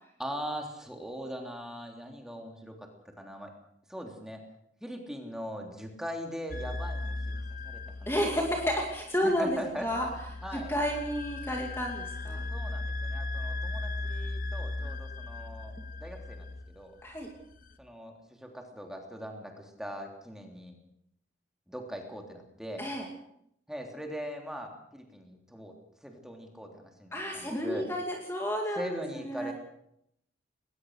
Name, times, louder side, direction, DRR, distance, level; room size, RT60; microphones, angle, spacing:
voice 1, 0.2-2.9 3.2-3.5 3.9-4.4 4.8-8.1 9.2-9.9 10.4-10.7 12.5-17.0 17.8-20.8 21.7-22.9 23.7-25.7 26.0-27.9 28.7-29.5, equal, 5° right, 2 dB, 3.3 m, -41 dB
sound 1, 6.5-17.8, left 2 dB, 50° left, 1.3 m, -37 dB
voice 2, 8.1-10.1 10.5-12.4 17.0-17.3 22.8-23.1 27.1-29.5, equal, 15° left, 0 dB, 2.6 m, -31 dB
21.0 x 19.5 x 6.6 m, 0.73 s
head